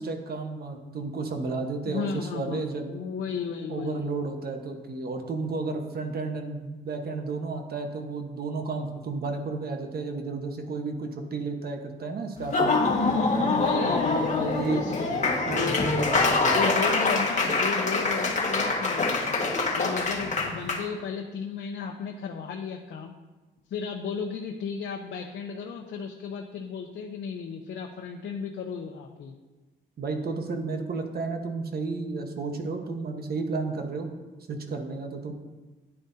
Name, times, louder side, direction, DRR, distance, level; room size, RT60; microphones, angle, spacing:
voice 1, 0.0-2.9 3.7-12.7 13.7-13.9 14.4-14.8 15.5-16.6 30.0-34.1 34.5-35.3, right 3 dB, 50° right, 4 dB, 1.3 m, -32 dB
voice 2, 1.9-4.0 13.1-15.8 16.5-19.3 19.7-23.1 23.7-29.3, left 6 dB, 65° left, 3 dB, 0.8 m, -34 dB
Laughter / Applause, 12.4-20.8, left 3 dB, 35° left, 1.7 m, -25 dB
10.0 x 9.8 x 2.8 m, 1.2 s
cardioid pair, 90°, 20 cm